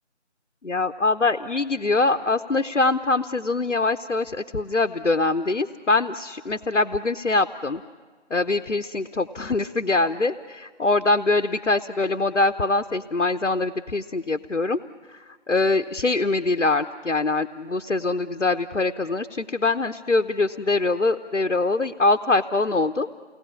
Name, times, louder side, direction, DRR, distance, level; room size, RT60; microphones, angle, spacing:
voice 1, 0.6-7.8 8.3-14.8 15.1-15.2 15.5-23.1, left 3 dB, 80° left, 8 dB, 0.9 m, -23 dB
29.0 x 19.0 x 8.6 m, 1.5 s
figure-of-eight pair, 180°, 36 cm